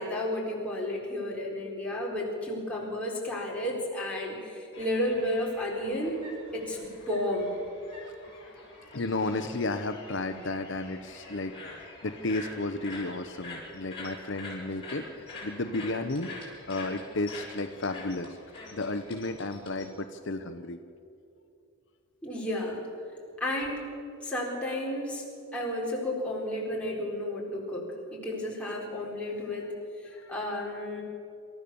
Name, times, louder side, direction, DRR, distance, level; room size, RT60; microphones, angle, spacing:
voice 1, 0.0-6.1 6.5-6.8 7.1-7.5 22.2-22.8 23.4-23.8 24.2-25.2 25.5-29.7 30.3-31.0, left 1 dB, 5° left, -4 dB, 4.2 m, -32 dB
sound 1, 4.7-19.9, left 2 dB, 25° left, 6.5 m, -46 dB
voice 2, 8.0-18.4 18.7-20.8 30.0-30.4, left 2 dB, 60° left, 7 dB, 0.8 m, -33 dB
27.5 x 14.0 x 7.0 m, 2.6 s
head